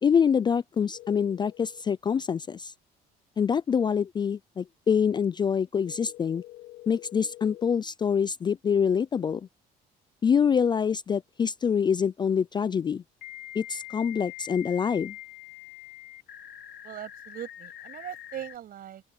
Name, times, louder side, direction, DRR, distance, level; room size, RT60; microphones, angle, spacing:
voice 1, 0.0-2.7 3.4-6.4 6.9-9.4 10.2-13.0 13.6-15.1, left 7 dB, 25° left, 0.3 m, -25 dB
sound 1, 0.9-1.8 5.9-7.8 10.5-10.6 13.2-18.6, left 15 dB, 70° left, 2.2 m, -45 dB
voice 2, 16.8-19.0, right 11 dB, 60° right, 7.4 m, -40 dB
open air
cardioid pair, 110°, 17 cm